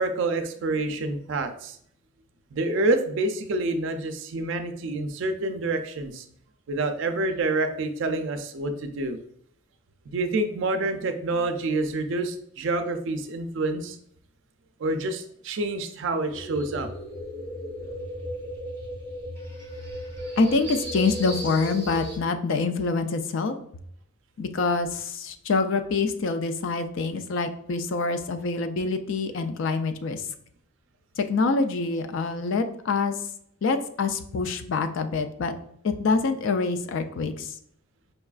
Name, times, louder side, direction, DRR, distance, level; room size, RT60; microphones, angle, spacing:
voice 1, 0.0-1.8 2.5-6.2 6.7-9.2 10.1-14.0 14.8-16.9, right 2 dB, 60° right, 7 dB, 0.4 m, -27 dB
sound 1, 16.3-22.2, equal, 10° left, 1.1 m, -35 dB
voice 2, 20.4-23.5 24.4-30.2 31.2-33.1 33.6-35.5 35.8-37.5, left 4 dB, 60° left, 7 dB, 0.3 m, -26 dB
5.3 x 2.3 x 2.3 m, 0.68 s
head